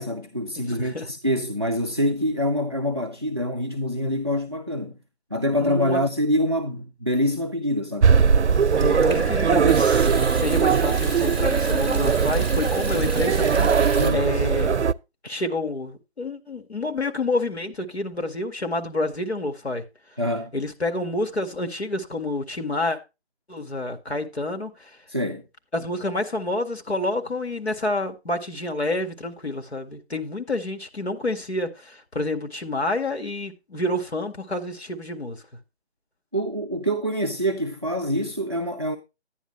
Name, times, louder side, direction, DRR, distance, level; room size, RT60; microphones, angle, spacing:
voice 1, 0.0-5.0 5.3-8.1 14.0-14.3 20.2-20.5 25.1-25.4 36.3-39.0, equal, 25° right, 0.4 m, -25 dB
voice 2, 0.7-1.1 5.6-6.0 8.8-14.9 15.2-19.8 20.5-23.0 23.5-24.9 25.7-35.4, left 2 dB, 70° left, 2.0 m, -28 dB
sound 1, 8.0-14.9, right 6 dB, 90° right, 0.5 m, -20 dB
Water tap faucet / Sink (filling or washing) / Trickle dribble, 8.5-14.1, right 1 dB, 10° left, 2.3 m, -36 dB
10.5 x 10.0 x 3.2 m
figure-of-eight pair, 150°, 33 cm